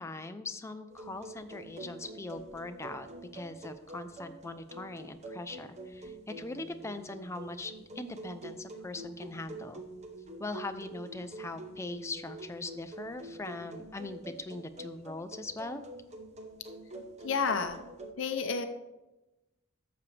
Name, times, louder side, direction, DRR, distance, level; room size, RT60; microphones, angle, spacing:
voice 1, 0.0-9.8 10.4-15.8, left 2 dB, 15° left, 8 dB, 0.5 m, -41 dB
sound 1, 0.9-18.1, right 2 dB, 35° right, 0.9 m, -46 dB
voice 2, 17.2-17.8 18.2-18.7, left 5 dB, 65° left, 8 dB, 0.6 m, -30 dB
12.0 x 7.0 x 3.3 m, 1.0 s
head